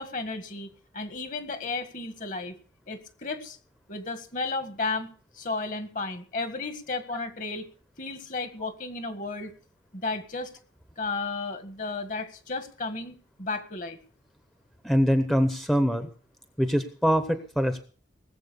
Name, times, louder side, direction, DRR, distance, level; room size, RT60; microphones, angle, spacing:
voice 1, 0.0-2.5 2.9-3.6 3.9-5.1 5.3-7.6 8.0-9.5 9.9-10.5 11.0-14.0, left 3 dB, 45° left, 9 dB, 1.7 m, -33 dB
voice 2, 14.8-16.1 16.6-17.8, equal, ahead, 8 dB, 0.8 m, -24 dB
19.0 x 7.6 x 6.9 m, 0.43 s
head